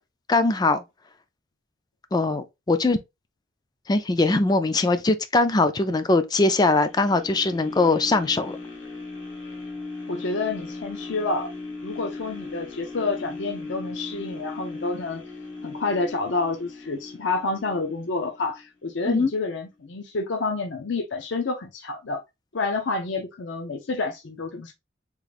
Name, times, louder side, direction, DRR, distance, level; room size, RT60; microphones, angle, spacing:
voice 1, 0.3-0.8 2.1-3.0 3.9-8.6 19.1-19.3, left 2 dB, 20° left, 0.4 m, -21 dB
sound 1, 6.6-18.7 19.2-19.3, left 3 dB, 80° left, 1.3 m, -38 dB
voice 2, 10.1-11.5 11.8-15.2 15.6-22.2 22.5-24.7, left 3 dB, 65° left, 0.6 m, -29 dB
3.6 x 2.5 x 3.3 m
head